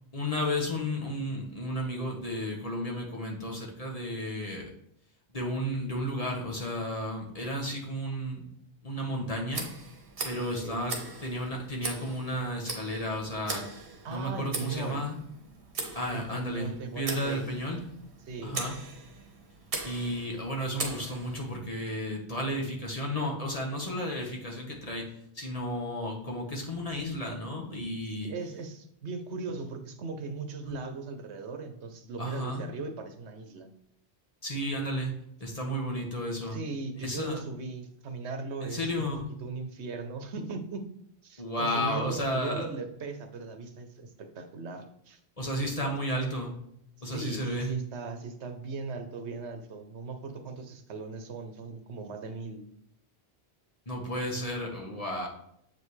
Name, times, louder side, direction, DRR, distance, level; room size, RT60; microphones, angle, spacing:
voice 1, 0.1-4.7 5.3-8.5 8.8-9.7 10.2-13.8 14.1-15.2 15.9-17.8 18.4-18.7 19.8-28.3 30.7-30.8 32.2-32.7 34.4-36.6 37.0-37.4 38.6-39.3 41.4-42.7 45.4-46.5 47.0-47.7 53.9-55.3, equal, 35° left, 0 dB, 1.3 m, -33 dB
Tick, 9.5-21.6, right 3 dB, 60° right, 1.4 m, -40 dB
voice 2, 14.0-15.0 16.1-17.5 18.3-18.6 28.2-33.7 36.5-39.0 39.4-40.9 41.2-45.2 47.0-52.6, right 4 dB, 80° right, 7 dB, 1.1 m, -38 dB
7.4 x 5.3 x 3.2 m, 0.72 s
omnidirectional pair, 1.1 m